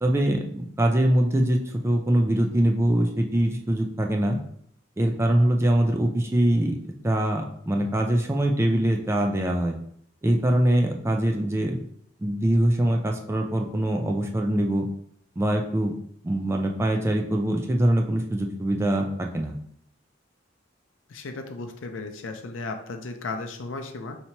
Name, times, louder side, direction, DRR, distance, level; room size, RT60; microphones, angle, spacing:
voice 1, 0.0-4.4 5.0-6.8 7.0-9.8 10.2-11.8 12.2-14.9 15.4-15.9 16.2-19.5, right 1 dB, 15° right, 2 dB, 0.4 m, -23 dB
voice 2, 21.1-24.2, left 3 dB, 90° left, 5 dB, 0.5 m, -35 dB
2.8 x 2.8 x 4.4 m, 0.66 s
head